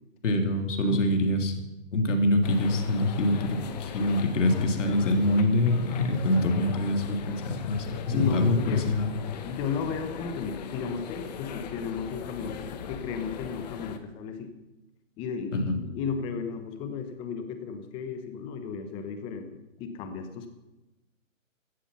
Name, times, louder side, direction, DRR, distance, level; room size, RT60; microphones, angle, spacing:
voice 1, 0.2-1.5 1.9-9.1 15.5-15.8, left 1 dB, 65° left, 5 dB, 3.4 m, -25 dB
sound 1, 2.4-14.0, left 7 dB, 30° left, 1.3 m, -40 dB
voice 2, 8.1-8.9 9.4-14.5 15.2-19.5 19.8-20.5, left 6 dB, 15° left, 8 dB, 1.1 m, -34 dB
16.5 x 13.0 x 5.7 m, 1.0 s
hypercardioid pair, 160°, 40 cm